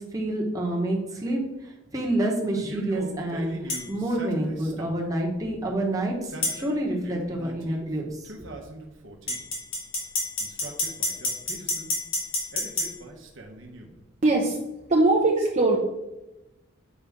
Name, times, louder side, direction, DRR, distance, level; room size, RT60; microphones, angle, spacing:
voice 1, 0.1-1.4 1.9-3.5 3.9-6.3 6.5-8.0, right 1 dB, 15° right, -2 dB, 1.1 m, -27 dB
Male speech man speaking, 2.6-5.1 6.1-7.8 8.2-9.5 10.4-11.9 12.5-14.0, right 1 dB, 60° right, 1.0 m, -42 dB
sound 1, 3.7-3.9 6.4-6.6 9.3-12.9, left 2 dB, 70° left, 1.9 m, -28 dB
voice 2, 14.2-14.6 14.9-15.8, right 2 dB, 35° right, -2 dB, 0.7 m, -20 dB
7.3 x 5.2 x 3.5 m, 0.97 s
head